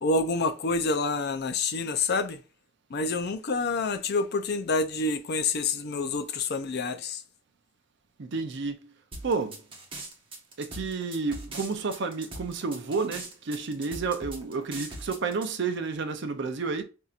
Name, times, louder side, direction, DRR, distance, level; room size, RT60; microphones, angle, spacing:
voice 1, 0.0-2.4 2.9-7.2, left 3 dB, 55° left, 0.5 m, -27 dB
voice 2, 8.2-8.8 9.2-9.6 10.6-16.8, right 4 dB, 65° right, 0.6 m, -30 dB
sound 1, 9.1-15.5, right 2 dB, 25° right, 1.1 m, -40 dB
5.5 x 2.7 x 2.4 m
head